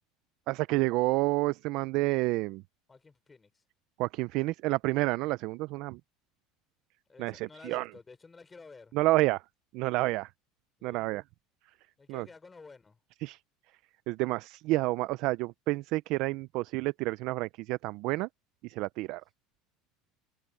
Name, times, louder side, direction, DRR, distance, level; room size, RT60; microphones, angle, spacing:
voice 1, 0.5-2.6 4.0-6.0 7.2-7.8 8.9-9.4 9.7-10.3 10.8-11.2 12.1-12.3 13.2-13.4 14.1-18.3 18.6-19.2, right 20 dB, 45° right, 0.4 m, -29 dB
voice 2, 2.9-3.6 7.1-9.0 10.8-11.1 12.0-13.0, left 4 dB, 10° left, 5.1 m, -52 dB
cardioid pair, 180°, 0 cm